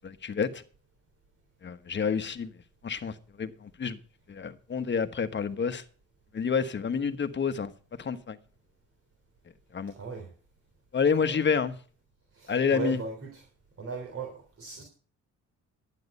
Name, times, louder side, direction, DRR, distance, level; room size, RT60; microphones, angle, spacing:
voice 1, 0.0-0.6 1.6-2.5 2.8-4.0 4.3-5.8 6.3-8.4 9.7-9.9 10.9-11.7 12.5-13.0, left 6 dB, 35° left, 1.3 m, -29 dB
voice 2, 10.0-10.3 11.2-11.3 12.3-13.4 13.8-14.8, right 4 dB, 50° right, 3.4 m, -37 dB
11.5 x 9.7 x 5.4 m
cardioid pair, 90°, 30 cm